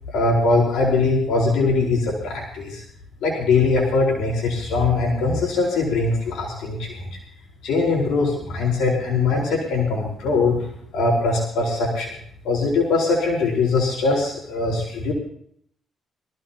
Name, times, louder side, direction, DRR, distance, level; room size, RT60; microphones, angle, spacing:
voice 1, 0.1-2.8 3.2-7.2 7.6-10.7 10.9-12.1 12.4-15.1, left 3 dB, 90° left, -3 dB, 4.3 m, -21 dB
24.5 x 15.0 x 2.9 m, 0.63 s
cardioid pair, 100°, 0 cm